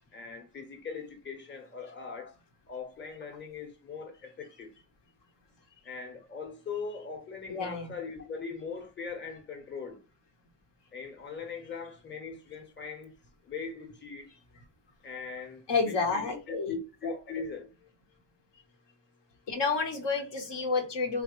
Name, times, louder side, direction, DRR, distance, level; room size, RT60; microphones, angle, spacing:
voice 1, 0.1-2.3 2.7-4.7 5.8-10.0 10.9-13.1 13.4-14.3 15.0-17.7, left 5 dB, 25° left, 0.8 m, -40 dB
voice 2, 7.5-7.9 15.7-16.7 17.0-17.1 19.5-21.2, left 4 dB, 70° left, 0.8 m, -30 dB
3.2 x 2.1 x 2.9 m
cardioid pair, 80°, 44 cm